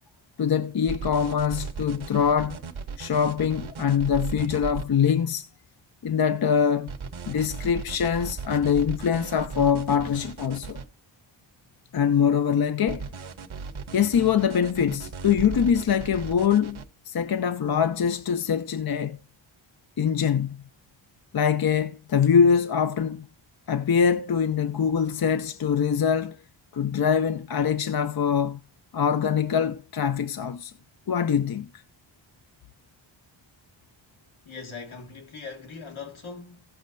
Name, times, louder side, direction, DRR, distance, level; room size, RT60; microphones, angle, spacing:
voice 1, 0.4-2.6 3.0-5.4 6.0-6.9 7.2-10.8 11.9-13.1 13.9-16.8 17.1-19.2 20.0-20.6 21.3-23.2 23.7-26.4 26.7-28.6 28.9-30.7 31.1-31.7, left 7 dB, 50° left, 0.7 m, -23 dB
sound 1, 0.9-4.9 6.9-10.9 12.9-16.9, right 5 dB, 80° right, 1.2 m, -36 dB
voice 2, 34.5-36.6, left 4 dB, 80° left, 2.1 m, -40 dB
17.0 x 6.4 x 2.6 m
wide cardioid pair, 170°, 47 cm